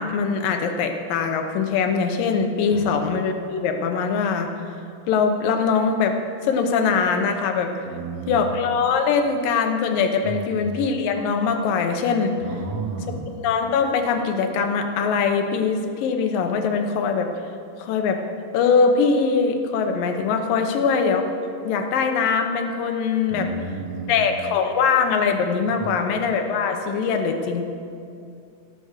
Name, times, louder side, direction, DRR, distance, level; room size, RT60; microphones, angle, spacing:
voice 1, 0.0-4.5 5.1-6.2 6.4-7.7 8.3-12.4 13.3-17.3 17.8-18.2 18.5-21.3 21.6-23.5 24.1-27.7, left 5 dB, 80° left, 5 dB, 2.7 m, -22 dB
voice 2, 7.8-8.5 10.2-10.8 12.4-13.3 23.3-24.3 25.8-26.0, right 4 dB, 55° right, 2 dB, 1.7 m, -33 dB
16.5 x 6.9 x 6.5 m, 2.5 s
omnidirectional pair, 4.0 m